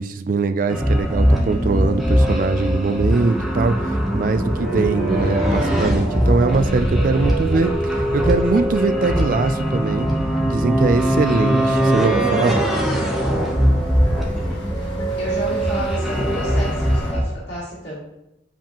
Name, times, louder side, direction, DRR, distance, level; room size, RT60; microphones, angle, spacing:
voice 1, 0.0-10.1 10.5-12.6, right 3 dB, 45° right, 9 dB, 0.3 m, -21 dB
sound 1, 0.7-17.2, right 1 dB, ahead, 0.8 m, -20 dB
sound 2, 4.8-15.3, left 1 dB, 25° left, 2.1 m, -35 dB
voice 2, 5.2-5.7 15.2-18.0, equal, 55° left, -8 dB, 2.3 m, -32 dB
sound 3, 11.4-17.1, equal, 75° left, 1.4 m, -36 dB
7.2 x 4.9 x 3.0 m, 0.86 s
head